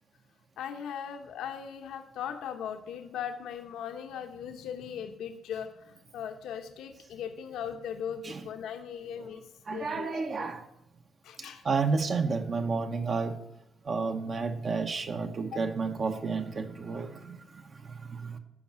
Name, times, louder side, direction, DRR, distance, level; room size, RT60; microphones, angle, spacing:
voice 1, 0.6-9.4 9.7-10.5 11.2-11.6 15.5-15.6, left 8 dB, 80° left, 0.9 m, -39 dB
voice 2, 9.7-10.7 11.4-13.4 13.8-18.4, right 4 dB, 40° right, 0.8 m, -31 dB
9.9 x 5.4 x 7.4 m
cardioid pair, 120°, 0 cm